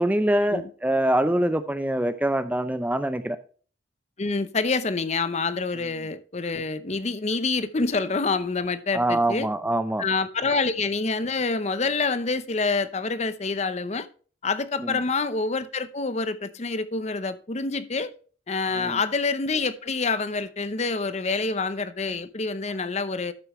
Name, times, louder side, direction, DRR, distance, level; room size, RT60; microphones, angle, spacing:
voice 1, 0.0-3.4 8.9-10.0 14.8-15.0 18.8-19.0, right 1 dB, 10° right, 0.5 m, -24 dB
voice 2, 4.2-9.5 10.0-14.1 14.4-18.1 18.5-23.3, left 4 dB, 35° left, 0.7 m, -27 dB
12.0 x 6.8 x 3.1 m
head